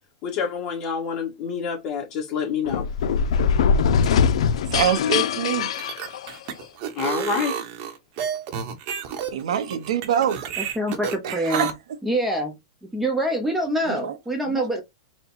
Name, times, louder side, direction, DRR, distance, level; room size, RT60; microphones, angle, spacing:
voice 1, 0.2-2.9 7.0-7.6, left 6 dB, 35° left, 1.8 m, -27 dB
sound 1, 2.6-6.7, left 6 dB, 75° left, 0.5 m, -22 dB
voice 2, 4.7-5.7 9.3-10.4 11.2-11.7 13.8-14.2 14.5-14.8, right 9 dB, 75° right, 0.9 m, -25 dB
sound 2, 5.6-11.7, right 8 dB, 40° right, 0.9 m, -31 dB
voice 3, 10.6-11.7 12.0-12.5 12.9-14.8, right 1 dB, 5° right, 0.7 m, -25 dB
4.2 x 2.2 x 4.2 m
supercardioid pair, 145°, 3 cm